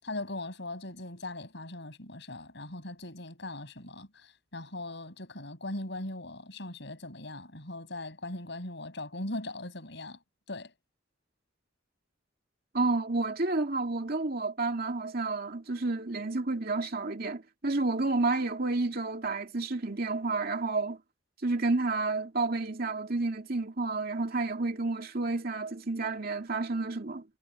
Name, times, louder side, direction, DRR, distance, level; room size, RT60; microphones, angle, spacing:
voice 1, 0.0-10.2 10.5-10.7, left 2 dB, 65° left, 7.9 m, -40 dB
voice 2, 12.7-21.0 21.4-27.2, right 3 dB, 50° right, 2.4 m, -30 dB
head